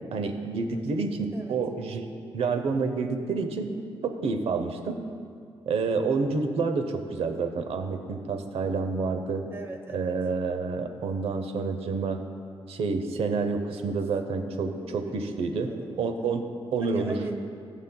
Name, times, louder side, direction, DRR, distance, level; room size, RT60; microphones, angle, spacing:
voice 1, 0.1-2.1 2.3-3.7 4.0-5.0 5.7-9.4 9.9-12.2 12.7-15.7 16.0-16.5 16.7-17.1, right 4 dB, 85° right, 6 dB, 0.7 m, -28 dB
voice 2, 0.7-1.6 9.5-10.1 13.7-14.0 14.6-16.3 16.9-17.3, right 2 dB, 25° right, 4 dB, 0.9 m, -42 dB
18.5 x 7.2 x 2.3 m, 2.3 s
wide cardioid pair, 150°, 10 cm